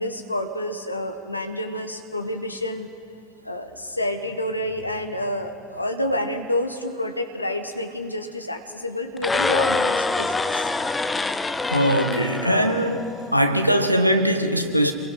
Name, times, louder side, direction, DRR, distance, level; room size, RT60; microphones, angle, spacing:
voice 1, 0.0-2.9 3.4-10.7, left 1 dB, 85° left, 6 dB, 1.5 m, -29 dB
sound 1, 9.2-13.3, left 3 dB, 15° left, 0.9 m, -25 dB
voice 2, 11.7-13.0 13.3-14.9, equal, 90° right, 6 dB, 1.4 m, -20 dB
27.5 x 21.5 x 5.8 m, 2.4 s
figure-of-eight pair, 70°, 0 cm